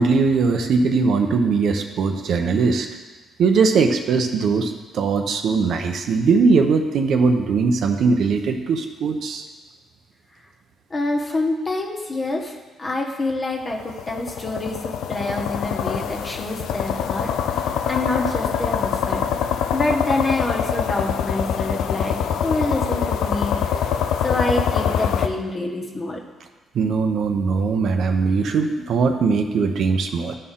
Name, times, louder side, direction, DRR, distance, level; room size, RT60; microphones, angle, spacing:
voice 1, 0.0-2.9 3.4-9.4 26.7-30.3, right 4 dB, 70° right, 5 dB, 0.7 m, -20 dB
voice 2, 10.9-12.5 12.8-17.6 17.9-19.2 19.7-23.8 24.2-26.2, left 2 dB, 30° left, 0 dB, 1.3 m, -26 dB
sound 1, 13.7-25.3, left 8 dB, 85° left, 0.4 m, -24 dB
12.5 x 4.4 x 3.7 m, 1.2 s
cardioid pair, 90°, 0 cm